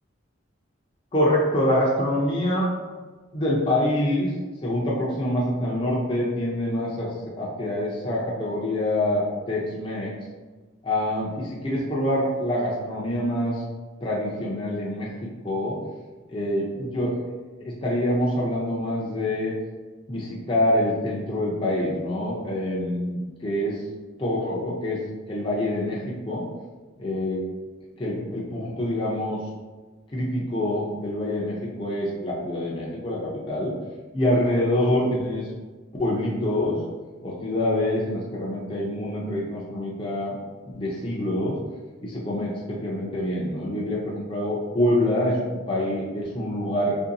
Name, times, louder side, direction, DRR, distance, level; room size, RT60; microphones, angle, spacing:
voice 1, 1.1-2.7 3.3-4.3 4.6-10.1 10.8-13.6 14.0-15.8 16.3-17.2 17.6-19.5 20.1-23.8 24.2-26.5 27.0-27.4 28.0-29.4 30.1-33.7 34.1-35.5 36.0-36.8 37.2-40.4 40.7-41.6 42.0-47.0, left 1 dB, 25° left, -5 dB, 0.5 m, -26 dB
3.0 x 2.7 x 3.9 m, 1.3 s
head